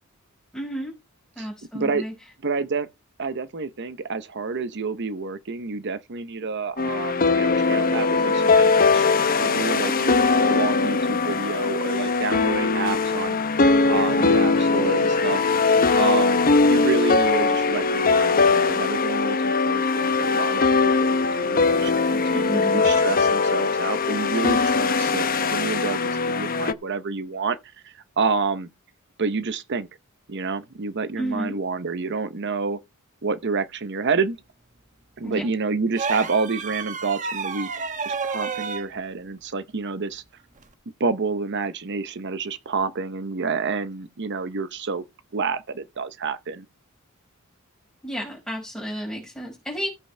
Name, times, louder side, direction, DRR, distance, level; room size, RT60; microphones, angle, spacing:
voice 1, 0.5-0.9 1.3-2.1 9.8-10.1 22.3-22.8 31.2-31.6 35.2-35.5 48.0-49.9, equal, 5° left, 5.0 m, -32 dB
voice 2, 1.7-2.0 2.4-2.9 3.2-9.0 9.4-13.4 13.9-15.4 16.0-27.6 27.8-28.7 29.2-29.9 30.3-32.8 33.2-34.4 35.2-37.7 38.0-40.2 41.0-45.0 45.3-46.6, right 4 dB, 55° right, 0.8 m, -28 dB
sound 1, 6.8-26.7, left 4 dB, 45° left, 0.8 m, -21 dB
sound 2, 35.9-38.9 40.6-40.7, right 5 dB, 40° right, 1.0 m, -30 dB
15.0 x 8.2 x 3.3 m
head